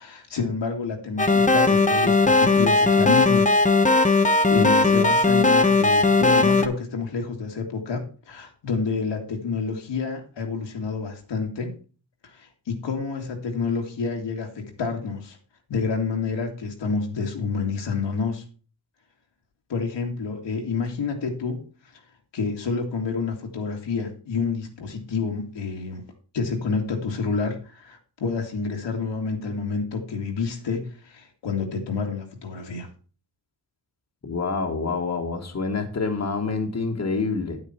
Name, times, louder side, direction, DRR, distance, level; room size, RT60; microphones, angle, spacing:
voice 1, 0.0-3.5 4.0-11.7 12.2-15.4 15.7-18.4 19.7-21.6 22.3-26.0 26.3-32.9, left 4 dB, 80° left, 2 dB, 2.4 m, -28 dB
sound 1, 1.2-6.7, left 3 dB, 15° left, 1.2 m, -18 dB
voice 2, 34.2-37.6, left 4 dB, 40° left, 3 dB, 1.9 m, -27 dB
9.1 x 8.8 x 4.4 m, 0.37 s
cardioid pair, 85°, 43 cm